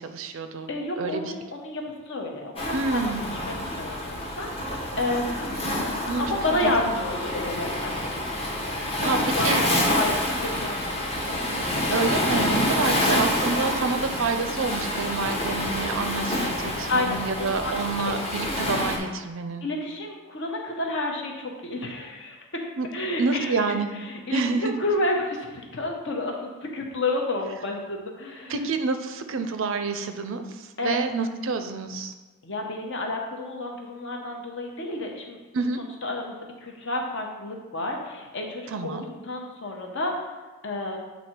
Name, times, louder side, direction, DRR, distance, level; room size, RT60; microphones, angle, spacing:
voice 1, 0.0-0.7 1.0-1.3 2.7-3.2 6.1-6.2 6.5-6.7 9.0-9.6 11.9-19.7 22.8-22.9 23.2-23.9 24.3-24.7 28.5-32.1 35.5-35.8 38.7-39.1, right 4 dB, 60° right, 8 dB, 0.5 m, -28 dB
voice 2, 0.7-5.4 6.2-8.1 9.0-11.2 12.8-13.2 16.9-17.7 18.0-18.2 19.6-22.4 22.9-28.6 30.8-31.0 32.4-35.4 35.8-40.3 40.6-41.0, left 2 dB, 55° left, 1 dB, 0.9 m, -30 dB
Waves surf, 2.6-19.0, left 1 dB, 25° left, 0.8 m, -27 dB
8.2 x 2.8 x 4.4 m, 1.3 s
head